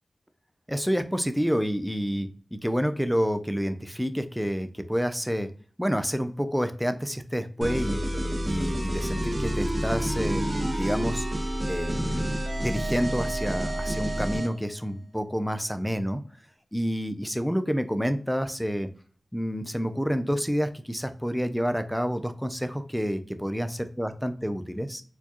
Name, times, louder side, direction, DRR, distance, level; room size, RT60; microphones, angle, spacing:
voice 1, 0.7-5.5 5.8-8.0 8.4-10.4 10.7-11.3 11.7-12.4 12.6-16.2 16.7-18.9 19.3-25.0, equal, ahead, 9 dB, 0.4 m, -28 dB
sound 1, 7.6-14.5, equal, 40° right, 1.0 m, -29 dB
4.4 x 2.3 x 2.9 m, 0.43 s
wide cardioid pair, 80°, 0 cm